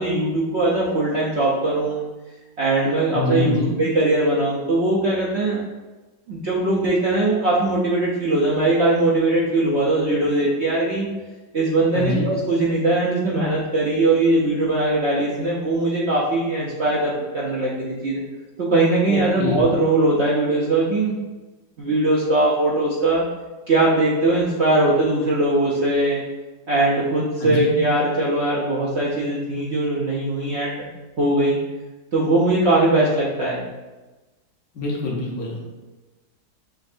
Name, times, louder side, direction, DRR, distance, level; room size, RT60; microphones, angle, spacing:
voice 1, 0.0-2.0 2.6-5.6 6.3-11.1 11.5-18.2 18.6-21.2 21.8-23.2 23.7-26.2 26.7-30.9 31.2-31.6 32.1-33.6, right 2 dB, 60° right, -5 dB, 0.7 m, -20 dB
voice 2, 3.1-3.8 11.9-12.3 19.1-19.7 27.4-27.8 34.7-35.6, left 3 dB, 60° left, -3 dB, 1.2 m, -25 dB
6.1 x 3.1 x 2.6 m, 1.2 s
omnidirectional pair, 1.8 m